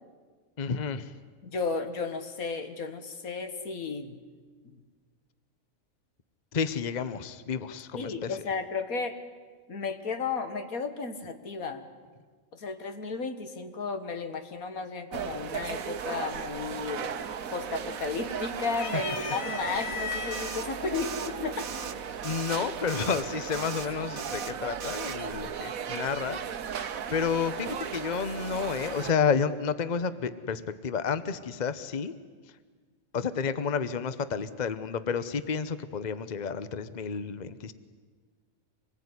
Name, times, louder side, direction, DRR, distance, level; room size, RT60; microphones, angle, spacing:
voice 1, 0.6-1.1 6.5-8.4 22.2-26.4 26.7-32.1 33.1-37.7, left 6 dB, 35° left, 13 dB, 1.0 m, -31 dB
voice 2, 1.4-4.2 4.6-4.8 7.9-9.2 9.7-11.8 12.5-17.1 17.5-21.7, left 4 dB, 90° left, 8 dB, 2.2 m, -34 dB
sound 1, 15.1-29.1, right 7 dB, 85° right, 1.5 m, -36 dB
sound 2, 16.8-17.2 17.6-18.3 18.7-20.6 21.5-21.6 22.8-23.3, left 7 dB, 75° left, 1.5 m, -37 dB
sound 3, 20.3-20.7 20.9-21.3 21.6-21.9 22.2-22.6 22.9-23.2 23.5-23.9 24.2-24.5 24.8-25.2, right 6 dB, 45° right, 1.0 m, -39 dB
26.0 x 20.0 x 9.7 m, 1.5 s
omnidirectional pair, 1.4 m